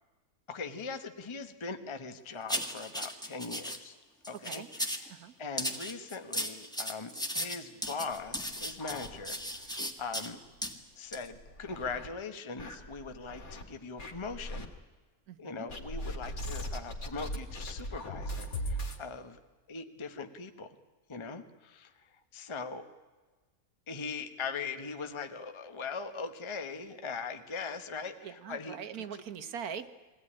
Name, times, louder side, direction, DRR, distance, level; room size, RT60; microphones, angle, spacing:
voice 1, 0.5-3.9 4.3-10.4 11.0-14.7 15.4-19.4 19.7-20.7 21.1-22.9 23.9-28.8, left 4 dB, 20° left, 8 dB, 1.0 m, -41 dB
sound 1, 2.5-3.8 4.2-5.1 5.6-10.3 10.6-10.7 11.1-11.3, equal, 5° left, 1.7 m, -36 dB
sound 2, 8.1-9.7 10.0-10.1 10.5-10.6 11.2-12.1 12.6-13.6 14.0-14.7 15.7-19.0, equal, 65° left, 2.8 m, -39 dB
voice 2, 15.3-15.7 28.2-29.9, right 7 dB, 75° right, 12 dB, 1.6 m, -42 dB
22.5 x 17.5 x 9.9 m, 1.3 s
omnidirectional pair, 1.6 m